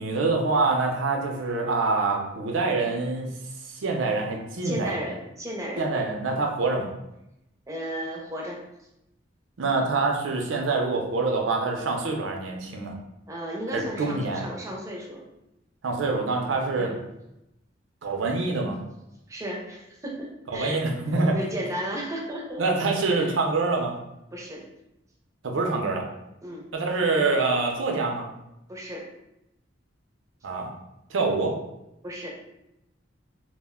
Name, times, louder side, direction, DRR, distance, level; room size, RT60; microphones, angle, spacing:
voice 1, 0.0-3.3 3.7-5.0 5.8-6.9 9.6-12.9 13.7-14.4 15.8-16.9 18.0-18.8 20.5-21.4 22.6-23.9 25.4-26.1 26.7-28.3 30.4-30.7 31.1-31.6, right 3 dB, 85° right, 1 dB, 0.5 m, -25 dB
voice 2, 4.6-5.9 7.7-8.6 13.3-15.3 16.7-17.0 19.3-20.9 21.3-22.6 23.1-23.4 24.3-24.6 26.4-26.7 28.7-29.1 32.0-32.3, right 1 dB, 15° right, -1 dB, 0.5 m, -34 dB
2.4 x 2.1 x 3.5 m, 0.87 s
head